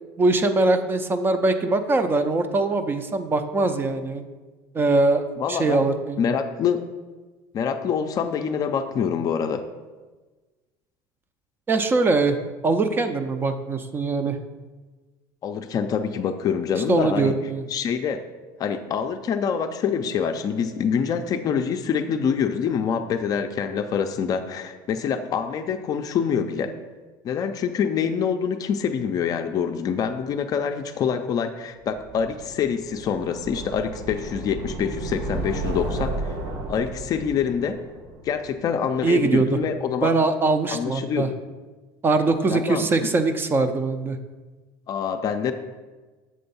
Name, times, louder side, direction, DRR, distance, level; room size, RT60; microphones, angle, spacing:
voice 1, 0.2-4.2 4.7-5.2 5.5-6.2 11.7-12.4 12.6-14.4 16.9-17.6 39.0-39.6 40.0-41.3 42.0-44.2, right 3 dB, 20° right, 8 dB, 0.4 m, -22 dB
voice 2, 5.4-5.8 6.2-6.8 7.5-9.6 15.4-17.4 17.7-18.2 18.6-26.7 27.2-36.3 36.7-37.8 38.2-40.1 40.7-41.3 42.5-42.9 44.9-45.5, left 7 dB, 35° left, 8 dB, 0.4 m, -25 dB
sound 1, 32.0-39.0, right 2 dB, 80° right, 1.4 m, -33 dB
7.5 x 3.4 x 5.5 m, 1.3 s
cardioid pair, 135°, 10 cm